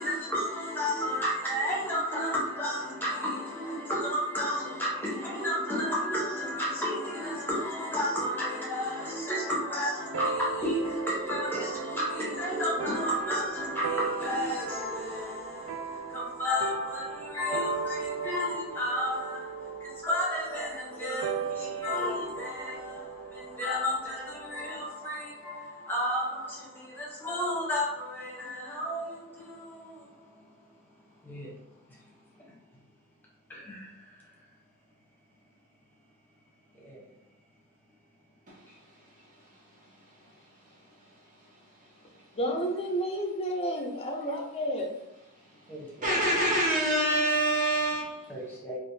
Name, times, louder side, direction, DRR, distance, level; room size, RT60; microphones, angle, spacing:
voice 1, 0.0-19.5 20.0-23.0 23.6-26.6 27.0-29.0 31.3-31.5 33.7-33.8 45.7-46.2 48.3-48.8, left 1 dB, 10° left, -4 dB, 0.9 m, -32 dB
sound 1, 10.1-24.9, right 7 dB, 80° right, 0.3 m, -38 dB
voice 2, 42.3-44.9, equal, 25° left, 1 dB, 0.5 m, -31 dB
voice 3, 46.0-48.2, right 1 dB, 35° right, -4 dB, 0.8 m, -25 dB
3.3 x 2.5 x 2.7 m, 0.87 s
head